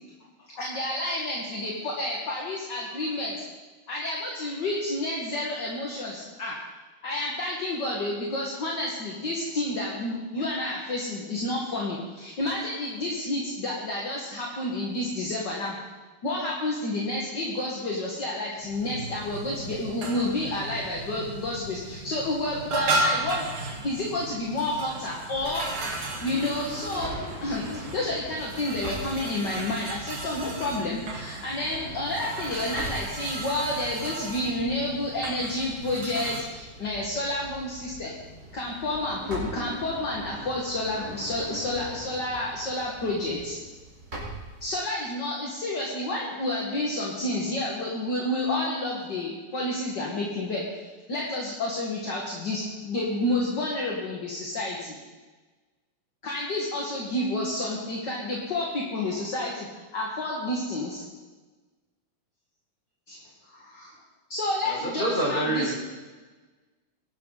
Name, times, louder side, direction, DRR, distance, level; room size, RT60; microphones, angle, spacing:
voice 1, 0.5-3.4 3.9-6.6 7.0-15.8 16.2-23.5 23.8-25.6 26.2-38.1 38.5-43.6 44.6-50.6 51.1-55.0 56.2-61.0 63.1-63.2 63.5-64.0 64.3-65.7, left 1 dB, 35° left, -3 dB, 2.0 m, -30 dB
sound 1, 18.6-36.4, right 2 dB, 40° right, 2.5 m, -35 dB
sound 2, 25.3-44.8, right 1 dB, 20° right, 4.6 m, -42 dB
voice 2, 64.6-65.8, right 1 dB, 15° left, -3 dB, 4.9 m, -27 dB
22.0 x 12.0 x 4.2 m, 1.3 s
omnidirectional pair, 4.3 m